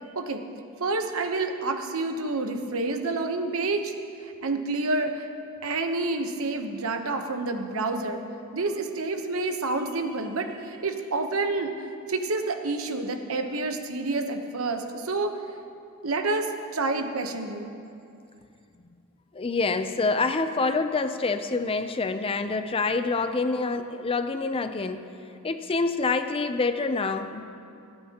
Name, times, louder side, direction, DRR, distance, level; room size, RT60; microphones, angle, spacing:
voice 1, 0.8-3.9 4.4-5.3 5.6-8.2 8.5-11.7 12.1-15.4 16.0-17.7, right 3 dB, 70° right, 6 dB, 1.0 m, -28 dB
voice 2, 19.3-25.1 25.4-27.4, left 3 dB, 25° left, 9 dB, 0.5 m, -26 dB
28.0 x 9.6 x 2.9 m, 2.5 s
head